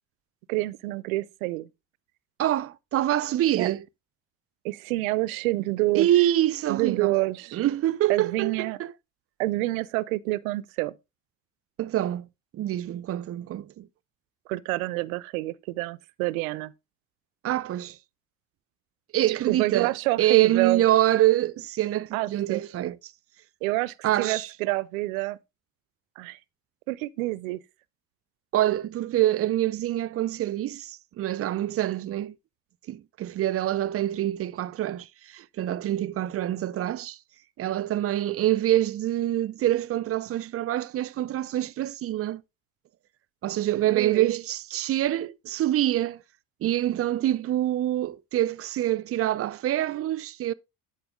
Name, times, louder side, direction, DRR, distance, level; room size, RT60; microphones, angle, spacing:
voice 1, 0.5-1.7 3.6-3.7 4.6-6.1 6.7-7.6 8.1-8.8 9.4-10.9 14.5-16.7 19.5-20.8 22.1-22.6 23.6-25.4 26.2-26.4 26.9-27.6 43.9-44.3, right 20 dB, 85° right, 0.6 m, -27 dB
voice 2, 2.4-3.8 5.9-7.1 7.5-8.9 11.8-12.3 12.5-13.9 17.4-18.0 19.1-23.1 24.0-24.5 28.5-32.4 32.9-37.2 37.6-42.4 43.4-46.2 46.6-50.5, right 13 dB, 35° right, 0.4 m, -26 dB
10.5 x 4.5 x 3.6 m
hypercardioid pair, 75°, 40 cm